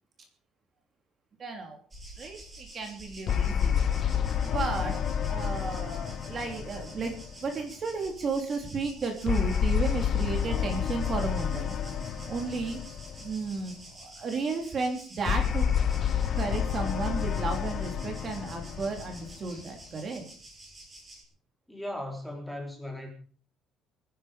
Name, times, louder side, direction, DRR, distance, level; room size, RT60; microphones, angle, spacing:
voice 1, 1.4-1.8 2.2-3.9 4.4-5.0 5.2-11.7 12.3-12.8 13.2-15.7 16.3-20.3, right 4 dB, 30° right, 4 dB, 3.1 m, -33 dB
sound 1, 1.9-21.2, right 1 dB, 15° right, 5.6 m, -49 dB
sound 2, 3.3-7.8 9.3-13.6 15.3-19.8, left 8 dB, 40° left, 1.2 m, -29 dB
voice 2, 21.7-23.1, left 1 dB, 5° left, 2 dB, 3.6 m, -37 dB
25.0 x 10.0 x 5.0 m, 0.42 s
cardioid pair, 170°, 0 cm